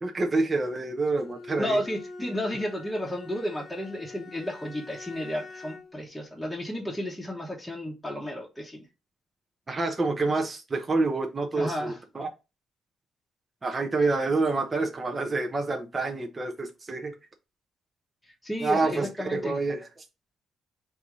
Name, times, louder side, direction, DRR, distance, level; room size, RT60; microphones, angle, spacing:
voice 1, 0.0-1.8 9.7-12.3 13.6-17.1 18.6-19.9, right 3 dB, 25° right, 0.7 m, -27 dB
Bowed string instrument, 1.2-6.0, left 3 dB, 50° left, 1.0 m, -44 dB
voice 2, 1.6-8.8 11.5-12.0 18.2-19.6, equal, 5° left, 1.1 m, -32 dB
3.4 x 2.7 x 4.7 m
cardioid pair, 90°, 0 cm